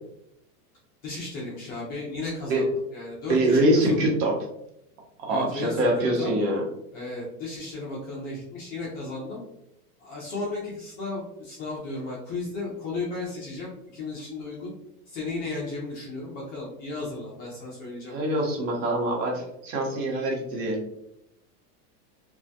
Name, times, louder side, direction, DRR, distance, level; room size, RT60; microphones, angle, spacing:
voice 1, 1.0-4.0 5.3-5.9 6.2-6.3 6.9-9.4 10.0-14.7 15.1-18.2, left 3 dB, 20° left, -6 dB, 0.4 m, -34 dB
voice 2, 3.3-4.4 5.2-6.6 18.1-20.8, right 1 dB, 55° right, 0 dB, 0.9 m, -24 dB
2.3 x 2.1 x 2.6 m, 0.80 s
hypercardioid pair, 130°, 47 cm